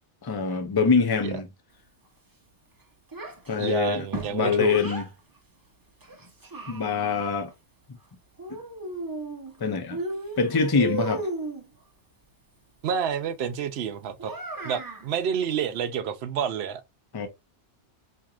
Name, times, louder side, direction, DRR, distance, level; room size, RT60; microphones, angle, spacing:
voice 1, 0.2-1.5 3.5-4.0 4.3-5.0 6.7-7.5 9.6-10.0 10.4-11.3 17.1-17.3, left 5 dB, 25° left, 0.5 m, -24 dB
Child speech kid speaking, 3.1-5.1 6.0-7.2 8.4-9.6 9.9-11.7 14.2-15.1, right 2 dB, 20° right, 0.6 m, -35 dB
voice 2, 3.6-4.8 12.8-14.3 14.6-16.8, right 7 dB, 65° right, 0.8 m, -29 dB
4.4 x 2.8 x 2.4 m
omnidirectional pair, 1.2 m